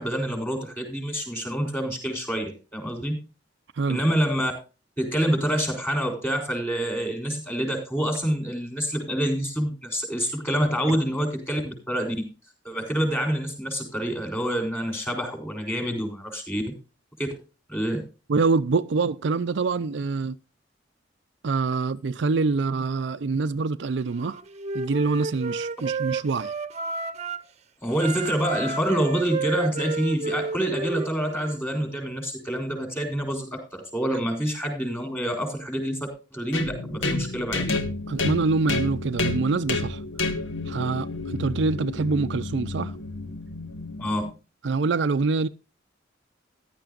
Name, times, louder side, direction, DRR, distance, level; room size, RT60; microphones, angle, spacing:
voice 1, 0.0-3.2 3.9-4.5 5.0-12.3 12.6-16.6 17.2-17.3 17.7-18.0 27.8-37.7 44.0-44.2, equal, 10° left, 3.9 m, -27 dB
voice 2, 18.3-20.4 21.4-24.4 24.7-26.5 38.1-40.0 40.7-42.9 44.6-45.5, right 4 dB, 65° right, 0.5 m, -25 dB
Wind instrument woodwind instrument, 24.1-27.5 27.9-31.6, right 4 dB, 35° right, 0.8 m, -32 dB
sound 1, 36.5-44.3, left 2 dB, 90° left, 1.7 m, -30 dB
15.0 x 11.0 x 2.5 m
head